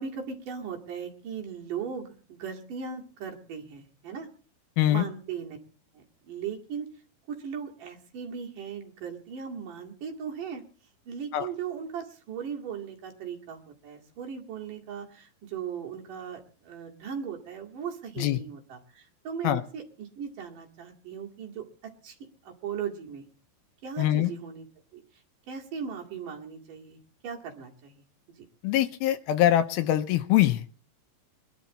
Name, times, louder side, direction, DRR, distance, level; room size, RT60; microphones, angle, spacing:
voice 1, 0.0-4.3 4.9-5.6 6.0-6.9 7.3-10.6 11.1-22.2 22.5-23.3 23.8-24.7 24.9-25.0 25.5-27.0 27.2-28.0 28.4-28.5, right 7 dB, 60° right, 3.6 m, -38 dB
voice 2, 24.0-24.3 28.6-30.6, left 13 dB, 75° left, 2.6 m, -23 dB
22.5 x 12.0 x 4.1 m
omnidirectional pair, 4.6 m